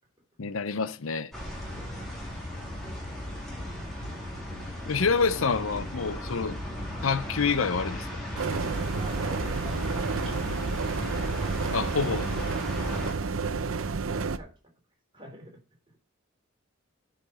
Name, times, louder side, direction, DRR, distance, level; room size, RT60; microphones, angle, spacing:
voice 1, 0.4-1.3 4.9-6.6 7.0-8.1 11.7-12.3, left 5 dB, 80° left, 0.7 m, -27 dB
sound 1, 1.3-13.1, left 1 dB, ahead, 3.8 m, -36 dB
voice 2, 1.7-2.2 2.6-3.5 6.3-6.5 8.7-11.0 12.8-13.4 13.7-14.5 15.1-15.6, equal, 25° right, 3.2 m, -48 dB
sound 2, 8.4-14.4, right 4 dB, 85° right, 0.7 m, -30 dB
10.0 x 5.2 x 5.5 m
head